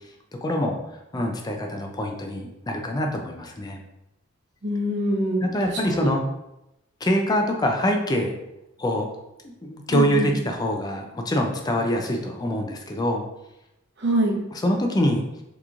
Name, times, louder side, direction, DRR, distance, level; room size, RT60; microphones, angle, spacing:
voice 1, 0.4-0.8 1.1-3.8 5.4-6.2 7.0-8.3 8.8-9.1 9.4-13.3 14.5-15.2, equal, 20° left, 3 dB, 0.4 m, -25 dB
voice 2, 4.6-6.1 9.9-10.3 14.0-14.4, right 1 dB, 60° right, -1 dB, 0.8 m, -25 dB
3.5 x 3.0 x 2.5 m, 0.89 s
head